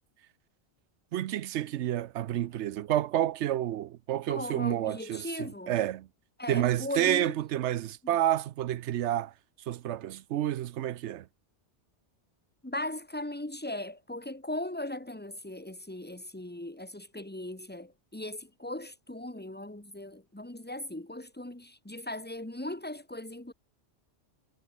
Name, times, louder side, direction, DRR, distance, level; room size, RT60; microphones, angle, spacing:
voice 1, 1.1-6.1 6.5-9.3 9.7-11.3, right 12 dB, 85° right, 0.9 m, -29 dB
voice 2, 4.3-5.8 6.4-7.4 12.6-23.5, left 1 dB, 10° left, 1.8 m, -38 dB
omnidirectional pair, 1.2 m